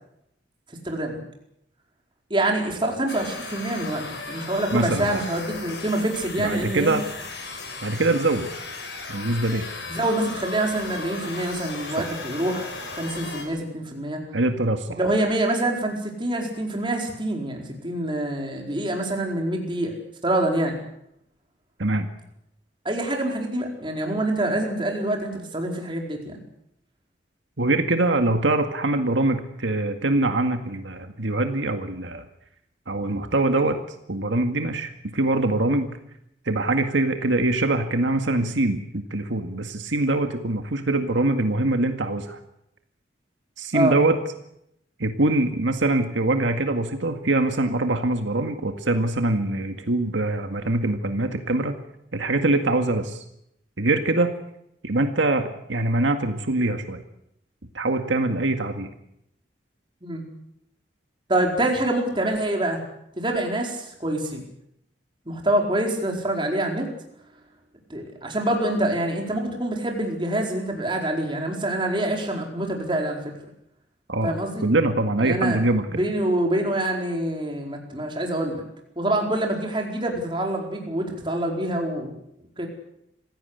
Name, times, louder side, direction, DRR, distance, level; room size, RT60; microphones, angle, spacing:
voice 1, 0.8-1.2 2.3-6.9 9.9-14.2 15.0-19.9 20.2-20.8 22.8-26.4 43.7-44.0 60.0-60.3 61.3-62.8 63.2-64.5 65.3-66.9 67.9-73.2 74.2-74.6 75.2-75.6 75.9-78.6 79.0-82.1 82.6-82.7, right 1 dB, 25° right, 1 dB, 4.5 m, -26 dB
sound 1, 3.1-13.4, left 3 dB, 65° left, 6.2 m, -36 dB
voice 2, 4.7-5.2 6.4-7.0 7.8-8.5 9.1-9.6 12.0-12.1 14.3-15.0 21.8-22.1 27.6-32.3 32.9-33.8 34.1-36.0 36.5-42.4 43.6-44.2 45.0-51.7 52.1-53.2 53.8-54.3 54.8-57.0 57.7-58.9 74.1-74.3 74.6-76.0, right 2 dB, 85° right, 6 dB, 2.0 m, -23 dB
26.0 x 16.5 x 8.2 m, 0.79 s
head